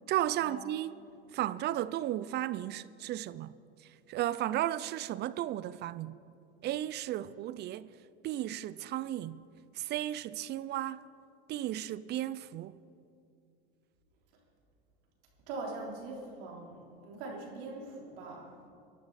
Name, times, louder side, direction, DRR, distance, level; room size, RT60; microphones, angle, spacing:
voice 1, 0.1-1.0 1.3-3.5 4.1-6.2 6.6-7.9 8.2-9.4 9.7-11.1 11.5-12.8, right 13 dB, 35° right, 0.4 m, -34 dB
voice 2, 15.5-18.5, right 3 dB, 65° right, 3.9 m, -42 dB
23.0 x 11.5 x 4.2 m
hypercardioid pair, 100°, 30 cm